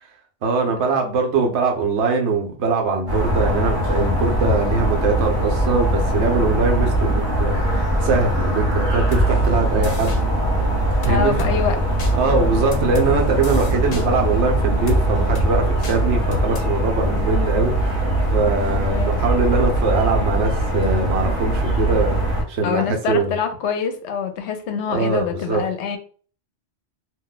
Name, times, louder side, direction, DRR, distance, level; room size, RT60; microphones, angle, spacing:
voice 1, 0.4-10.1 11.1-11.3 12.1-23.3 24.9-25.6, right 3 dB, 80° right, 2 dB, 1.0 m, -22 dB
sound 1, 3.1-22.4, right 1 dB, 30° right, 1.1 m, -21 dB
sound 2, 9.1-9.3 9.8-10.2 11.0-11.5 12.0-12.1 12.7-13.1 13.4-14.0 14.9-15.0 15.4-15.5 15.8-16.0 16.3-16.6, left 1 dB, 45° left, 0.6 m, -26 dB
voice 2, 11.1-11.8 12.4-12.7 18.9-19.1 22.6-26.0, left 6 dB, 85° left, 7 dB, 0.9 m, -25 dB
2.5 x 2.2 x 3.9 m, 0.43 s
omnidirectional pair, 1.1 m